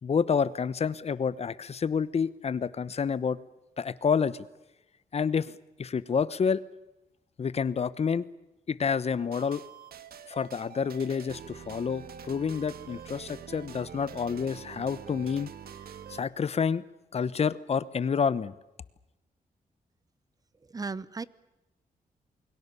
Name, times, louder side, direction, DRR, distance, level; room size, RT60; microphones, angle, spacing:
voice 1, 0.0-3.4 3.8-4.5 5.1-6.6 7.4-8.2 8.7-9.6 10.3-15.5 16.1-16.8 17.1-18.5, left 6 dB, 40° left, 17 dB, 1.0 m, -28 dB
sound 1, 9.3-16.2, right 8 dB, 85° right, 1.7 m, -45 dB
voice 2, 20.6-21.2, right 4 dB, 25° right, 18 dB, 1.0 m, -36 dB
28.5 x 22.5 x 6.9 m, 0.97 s
wide cardioid pair, 140°, 15 cm